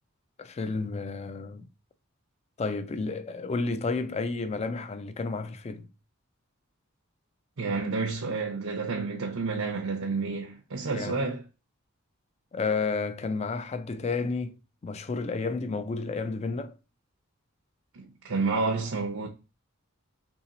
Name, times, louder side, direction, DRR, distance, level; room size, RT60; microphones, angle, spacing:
voice 1, 0.4-1.7 2.6-5.9 10.9-11.2 12.5-14.6 14.8-16.7, left 4 dB, 30° left, 0.3 m, -31 dB
voice 2, 7.6-11.4 17.9-19.3, right 4 dB, 85° right, 0.6 m, -30 dB
2.9 x 2.8 x 3.9 m
head